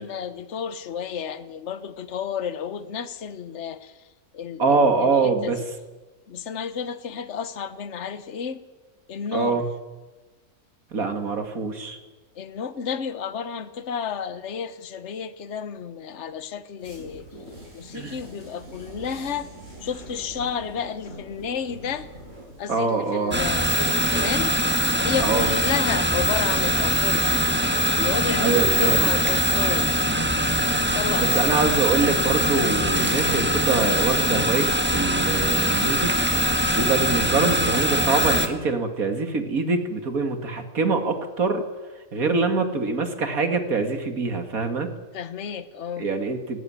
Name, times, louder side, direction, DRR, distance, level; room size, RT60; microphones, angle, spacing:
voice 1, 0.0-4.1 4.3-5.7 6.3-8.6 9.1-9.6 12.3-17.3 17.7-19.5 19.8-22.1 22.6-24.6 25.0-27.4 27.9-29.9 30.7-31.6 45.1-46.1, left 7 dB, 55° left, 13 dB, 1.4 m, -31 dB
voice 2, 4.6-5.6 9.3-9.6 10.9-12.0 17.9-18.1 22.7-23.4 25.2-25.5 28.4-29.1 31.2-36.1 36.7-41.6 42.1-44.9 46.0-46.6, right 4 dB, 70° right, 7 dB, 2.6 m, -24 dB
sound 1, 16.8-24.8, right 1 dB, 45° right, 8.2 m, -44 dB
sound 2, 23.3-38.5, equal, 5° right, 1.4 m, -22 dB
18.5 x 15.5 x 9.6 m, 1.2 s
omnidirectional pair, 1.6 m